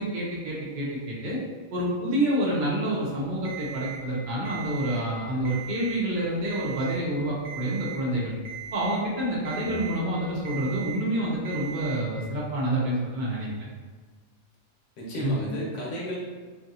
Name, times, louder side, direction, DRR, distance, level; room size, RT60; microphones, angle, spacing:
voice 1, 0.0-1.4 1.7-8.4 8.7-13.7 15.2-15.4, right 1 dB, 60° right, -6 dB, 0.5 m, -28 dB
Alarm, 3.4-4.0 4.4-5.0 5.4-6.0 6.4-7.0 7.4-8.0 8.4-9.0 9.4-10.0 10.4-11.0 11.4-12.0, right 9 dB, 90° right, 1.0 m, -39 dB
voice 2, 15.0-16.2, left 1 dB, 65° left, -5 dB, 1.0 m, -33 dB
2.6 x 2.6 x 2.6 m, 1.4 s
omnidirectional pair, 1.4 m